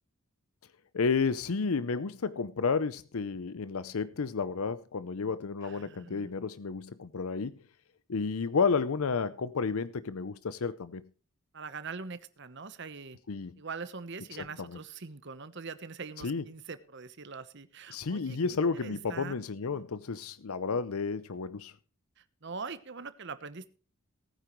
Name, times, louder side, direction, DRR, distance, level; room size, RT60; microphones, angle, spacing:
voice 1, 0.9-7.6 8.1-11.0 13.3-13.5 14.6-14.8 16.2-16.4 17.9-21.7, left 5 dB, 80° left, 16 dB, 0.6 m, -31 dB
voice 2, 5.6-6.3 11.5-13.2 13.6-19.8 22.2-23.7, right 5 dB, 55° right, 13 dB, 1.0 m, -43 dB
19.0 x 9.2 x 3.1 m, 0.40 s
head